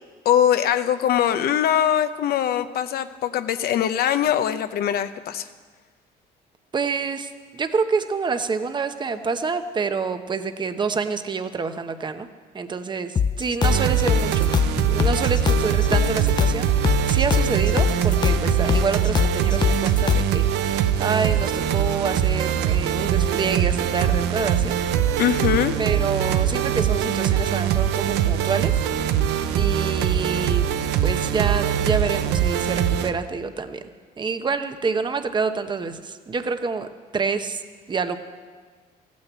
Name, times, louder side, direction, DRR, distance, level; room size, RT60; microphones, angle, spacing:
voice 1, 0.2-5.5 25.2-25.7, left 10 dB, 65° left, 10 dB, 0.8 m, -22 dB
voice 2, 6.7-12.3 12.5-14.5 14.9-16.7 17.1-24.8 25.8-28.8 29.6-30.7 31.0-33.8 34.2-37.6 37.9-38.2, right 5 dB, 25° right, 8 dB, 1.0 m, -27 dB
sound 1, 13.2-20.4, left 6 dB, 25° left, 0.4 m, -22 dB
sound 2, 13.6-33.1, right 10 dB, 90° right, 0.8 m, -22 dB
15.0 x 9.5 x 8.1 m, 1.5 s
cardioid pair, 110°, 17 cm